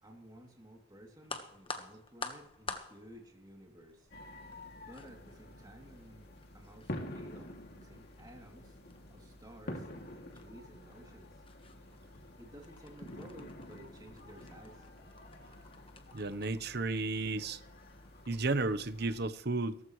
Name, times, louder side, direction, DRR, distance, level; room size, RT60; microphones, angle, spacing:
voice 1, 0.0-4.1 4.8-8.8 9.1-11.4 12.4-14.9, equal, 20° right, 0 dB, 2.9 m, -54 dB
sound 1, 1.2-18.7, left 4 dB, 25° left, 1.4 m, -51 dB
sound 2, 4.1-19.3, left 1 dB, 50° left, 2.6 m, -49 dB
voice 2, 16.1-17.6 18.3-19.8, right 3 dB, 50° right, 12 dB, 1.0 m, -33 dB
17.5 x 15.0 x 3.2 m, 0.63 s
head